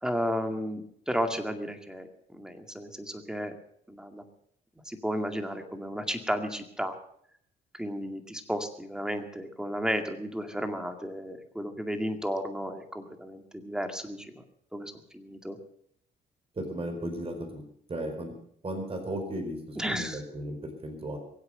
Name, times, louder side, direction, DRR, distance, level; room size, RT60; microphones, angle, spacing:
voice 1, 0.0-3.5 3.9-4.2 4.9-7.0 7.7-14.4 14.7-15.6 19.8-20.2, equal, 5° right, 6 dB, 2.2 m, -33 dB
voice 2, 16.6-17.6 17.9-18.4 18.6-21.2, right 1 dB, 30° right, 4 dB, 4.6 m, -35 dB
23.0 x 8.2 x 6.6 m, 0.68 s
cardioid pair, 90°, 20 cm